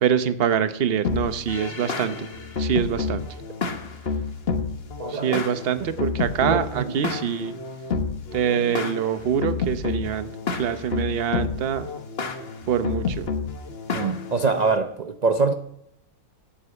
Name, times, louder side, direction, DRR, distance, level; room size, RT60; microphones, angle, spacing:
voice 1, 0.0-2.3 2.6-3.3 5.1-7.5 8.3-10.3 10.6-11.9 12.7-13.3, right 8 dB, 45° right, 0.9 m, -25 dB
sound 1, 1.0-14.8, left 4 dB, 45° left, 1.3 m, -30 dB
voice 2, 5.0-5.4 6.0-6.1 6.5-6.9 13.9-15.5, right 4 dB, 75° right, 0.3 m, -24 dB
11.5 x 8.8 x 8.0 m
omnidirectional pair, 1.6 m